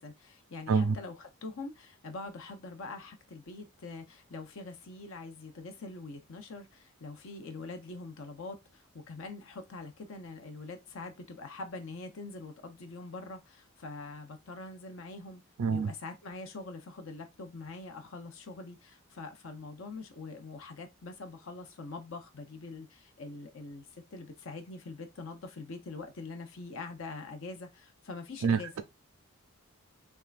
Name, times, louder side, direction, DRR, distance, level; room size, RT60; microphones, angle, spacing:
voice 1, 0.0-15.4 15.7-28.7, left 3 dB, 65° left, 0.6 m, -44 dB
voice 2, 15.6-15.9 28.4-28.8, right 5 dB, 70° right, 0.4 m, -27 dB
3.5 x 3.2 x 2.4 m
head